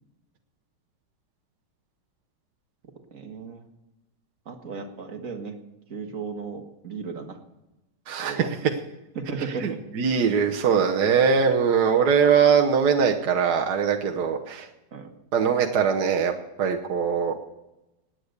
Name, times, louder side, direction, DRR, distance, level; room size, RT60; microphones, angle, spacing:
voice 1, 3.1-3.7 4.5-5.6 5.9-7.4 8.2-8.5 9.2-9.8 14.9-15.1, right 5 dB, 50° right, 4 dB, 2.0 m, -35 dB
voice 2, 8.1-8.4 9.6-14.7 15.3-16.3 16.6-17.3, right 6 dB, 65° right, 2 dB, 1.6 m, -21 dB
17.0 x 9.7 x 6.6 m, 0.96 s
omnidirectional pair, 1.9 m